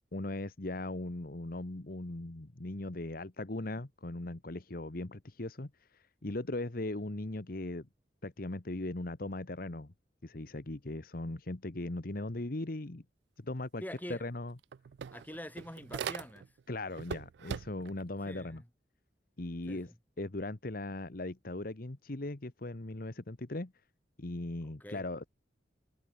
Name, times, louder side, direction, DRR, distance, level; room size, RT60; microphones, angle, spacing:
voice 1, 0.1-5.7 6.2-7.9 8.2-9.9 10.2-13.0 13.4-13.8 14.1-14.5 16.7-18.6 19.4-19.9 20.2-23.7 24.2-25.3, left 2 dB, 55° left, 1.3 m, -38 dB
voice 2, 13.8-14.2 15.1-16.5 18.2-18.7 19.7-19.9 24.6-25.0, left 1 dB, 10° left, 3.1 m, -45 dB
sound 1, 14.0-14.1 14.4-16.6 17.0-18.0, right 7 dB, 70° right, 0.3 m, -41 dB
head